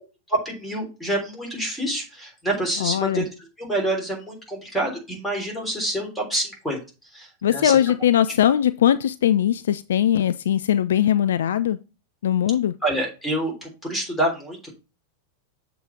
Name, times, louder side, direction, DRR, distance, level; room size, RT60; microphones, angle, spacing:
voice 1, 0.3-3.3 3.6-6.8 7.1-7.7 12.8-14.7, right 1 dB, 5° left, 3.4 m, -27 dB
voice 2, 2.8-3.2 7.4-11.8 12.2-12.7, left 10 dB, 60° left, 0.3 m, -20 dB
7.1 x 3.8 x 5.8 m
figure-of-eight pair, 90°, 0 cm